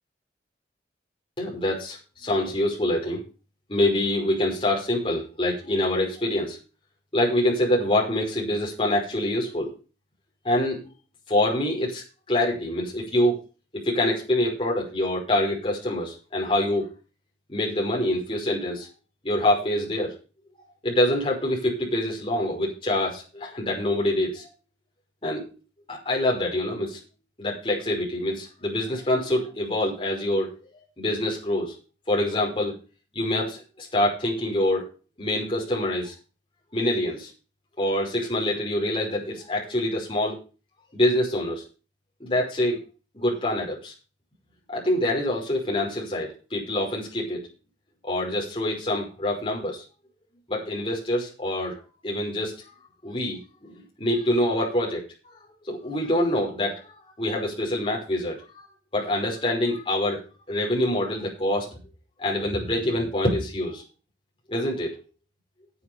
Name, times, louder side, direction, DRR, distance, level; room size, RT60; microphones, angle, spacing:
voice 1, 1.4-3.2 3.7-6.6 7.1-9.7 10.4-10.9 11.3-13.4 13.7-16.9 17.5-18.9 19.2-20.1 20.8-24.5 25.2-25.5 25.9-27.0 27.4-30.5 31.0-31.8 32.1-32.7 33.1-34.9 35.2-36.1 36.7-37.3 37.8-40.4 40.9-41.6 42.2-42.8 43.1-43.9 44.7-47.4 48.0-49.8 50.5-51.8 52.0-52.5 53.0-55.0 55.7-56.9 57.2-58.4 58.9-61.8 62.2-63.8 64.5-64.9, left 1 dB, 30° left, -3 dB, 5.5 m, -25 dB
9.7 x 8.2 x 7.3 m, 0.35 s
head